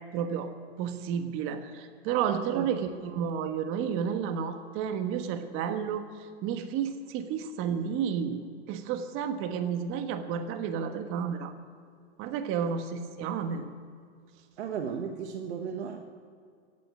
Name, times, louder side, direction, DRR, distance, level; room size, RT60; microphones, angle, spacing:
voice 1, 0.1-0.5 0.8-8.4 8.7-11.5 12.2-13.7, right 7 dB, 40° right, 7 dB, 1.4 m, -31 dB
voice 2, 14.6-16.0, right 7 dB, 85° right, 5 dB, 1.4 m, -35 dB
17.0 x 8.3 x 8.5 m, 2.3 s
hypercardioid pair, 135°, 32 cm